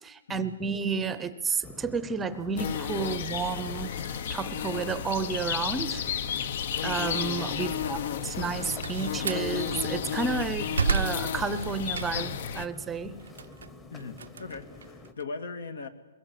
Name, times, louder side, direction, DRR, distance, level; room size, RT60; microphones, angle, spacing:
voice 1, 0.0-3.9 4.3-6.0 6.8-13.2, right 5 dB, 10° right, 13 dB, 0.8 m, -31 dB
sound 1, 1.6-15.1, left 2 dB, 10° left, 1.1 m, -48 dB
sound 2, 2.6-12.7, left 8 dB, 50° left, 0.8 m, -32 dB
voice 2, 7.6-8.0 13.9-15.9, left 4 dB, 75° left, 10 dB, 2.1 m, -40 dB
Slam, 8.4-9.5 10.1-12.4 12.8-15.2, right 6 dB, 90° right, 0.6 m, -32 dB
23.0 x 21.5 x 7.6 m, 1.2 s
hypercardioid pair, 165°, 0 cm